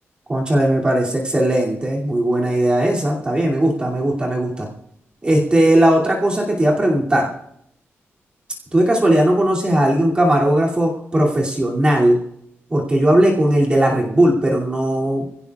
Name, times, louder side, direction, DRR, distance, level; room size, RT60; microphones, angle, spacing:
voice 1, 0.3-4.7 5.2-7.3 8.7-12.2 12.7-15.2, right 1 dB, 20° right, -3 dB, 2.7 m, -17 dB
24.5 x 17.0 x 2.4 m, 0.74 s
wide cardioid pair, 175°, 5 cm